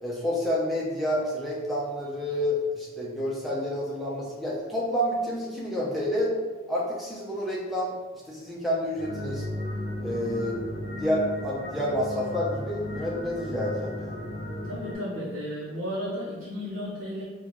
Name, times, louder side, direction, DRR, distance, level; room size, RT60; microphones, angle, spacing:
voice 1, 0.0-6.3 6.7-7.9 8.3-9.4 10.0-14.2, equal, ahead, -5 dB, 0.5 m, -29 dB
sound 1, 9.0-14.9, left 1 dB, 40° left, 0.7 m, -35 dB
voice 2, 14.6-17.2, equal, 80° right, -8 dB, 0.7 m, -33 dB
4.1 x 2.3 x 3.0 m, 1.3 s
head